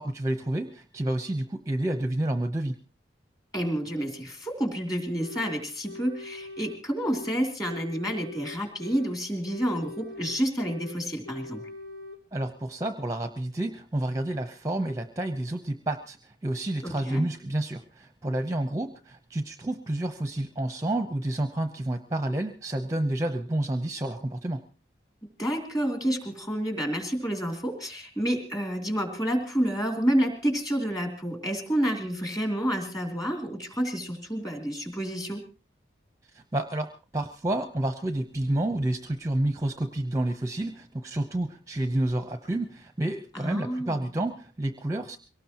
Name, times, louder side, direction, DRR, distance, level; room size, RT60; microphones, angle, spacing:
voice 1, 0.0-2.8 12.3-24.6 36.3-45.2, right 1 dB, 15° right, 8 dB, 0.7 m, -29 dB
voice 2, 3.5-11.6 16.8-17.3 25.4-35.4 43.3-44.0, equal, 20° left, 3 dB, 2.9 m, -29 dB
sound 1, 5.2-5.6 5.9-7.4 7.6-9.2 9.5-11.0 11.2-12.2, left 2 dB, 85° left, 3.1 m, -42 dB
23.0 x 18.5 x 3.0 m, 0.33 s
head